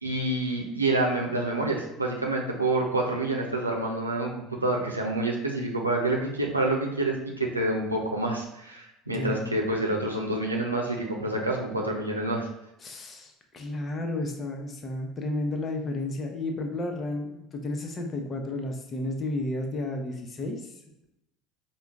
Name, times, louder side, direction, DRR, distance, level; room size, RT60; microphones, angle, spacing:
voice 1, 0.0-12.5, right 2 dB, 90° right, -1 dB, 0.7 m, -28 dB
voice 2, 9.1-9.5 12.8-20.7, left 2 dB, 35° left, 3 dB, 0.9 m, -32 dB
4.8 x 2.3 x 3.5 m, 0.88 s
figure-of-eight pair, 65°, 0 cm